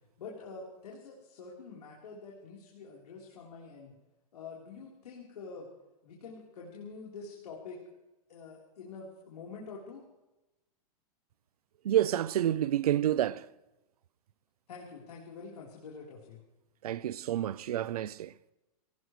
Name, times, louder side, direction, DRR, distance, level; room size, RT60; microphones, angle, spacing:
voice 1, 0.2-3.9 4.3-5.7 6.0-7.8 8.3-10.0 14.7-16.4, left 4 dB, 90° left, 4.0 m, -46 dB
voice 2, 11.8-13.5 16.8-18.3, right 11 dB, 75° right, 0.7 m, -29 dB
23.5 x 18.5 x 3.3 m
supercardioid pair, 175°, 19 cm